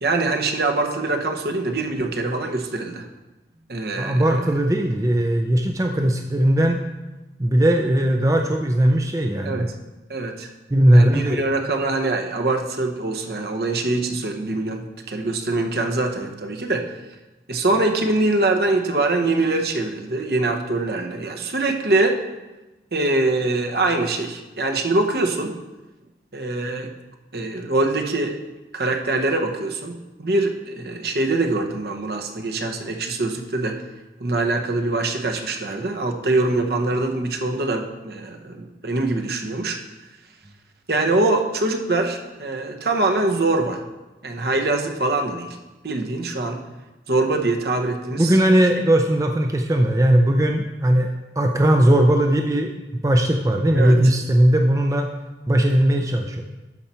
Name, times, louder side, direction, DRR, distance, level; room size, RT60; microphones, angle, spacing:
voice 1, 0.0-3.1 3.7-4.5 9.4-9.7 10.1-10.5 10.9-16.9 17.5-22.2 22.9-25.5 26.3-26.9 27.3-28.4 28.7-33.8 34.2-39.8 40.9-43.8 44.2-45.6 45.8-46.6 47.1-48.4 53.8-54.1, right 2 dB, 60° right, 3 dB, 1.0 m, -23 dB
voice 2, 4.0-6.8 7.4-9.7 10.7-11.4 48.2-51.1 51.4-52.7 53.0-55.1 55.5-56.4, right 1 dB, 20° right, 4 dB, 0.5 m, -18 dB
12.0 x 5.5 x 4.4 m, 1.1 s
head